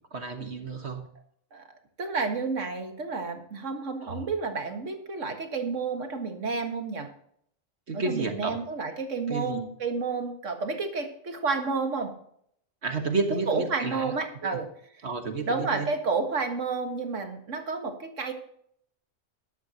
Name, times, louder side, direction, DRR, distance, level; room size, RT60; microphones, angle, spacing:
voice 1, 0.1-1.1 4.0-4.3 7.9-8.6 9.3-9.6 12.8-14.1 14.4-14.6 15.0-15.9, right 3 dB, 60° right, 5 dB, 1.7 m, -31 dB
voice 2, 2.0-7.1 7.9-12.1 13.5-14.7 15.5-18.3, right 4 dB, 75° right, 5 dB, 2.0 m, -30 dB
13.5 x 11.5 x 2.9 m, 0.67 s
omnidirectional pair, 1.3 m